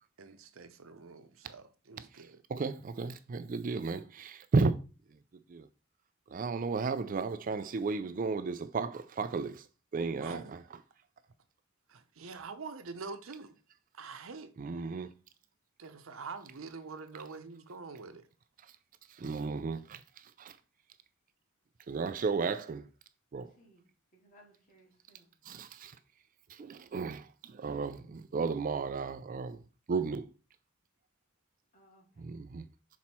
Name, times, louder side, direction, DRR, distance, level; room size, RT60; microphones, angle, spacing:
voice 1, 0.2-2.4 3.9-4.0 10.2-10.5 11.9-13.6 13.9-14.5 15.8-18.3, right 4 dB, 80° right, 0.7 m, -45 dB
voice 2, 2.1-4.7 5.5-5.7 6.3-9.7 9.9-10.6 14.6-15.1 18.6-18.7 19.1-20.6 21.9-22.9 23.3-23.5 25.4-26.0 26.5-29.6 29.9-30.3 32.2-32.7, right 4 dB, 40° right, 0.4 m, -34 dB
voice 3, 23.4-23.8 24.1-25.3 31.7-32.2, equal, 40° left, 2.8 m, -62 dB
6.2 x 4.2 x 4.3 m
head